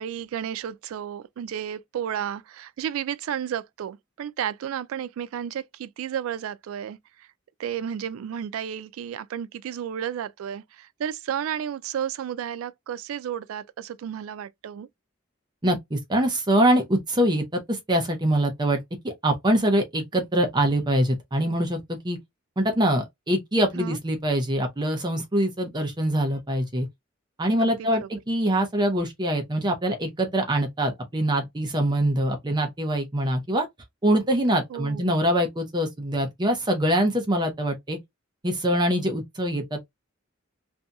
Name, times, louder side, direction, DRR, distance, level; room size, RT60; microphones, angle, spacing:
voice 1, 0.0-7.3 7.6-14.9 23.8-24.0 27.6-28.1 34.7-35.1, right 9 dB, 80° right, 0.3 m, -32 dB
voice 2, 15.6-22.2 22.6-26.9 27.4-33.7 34.0-38.0 38.4-39.9, right 1 dB, 20° right, 0.6 m, -24 dB
2.7 x 2.7 x 2.3 m
head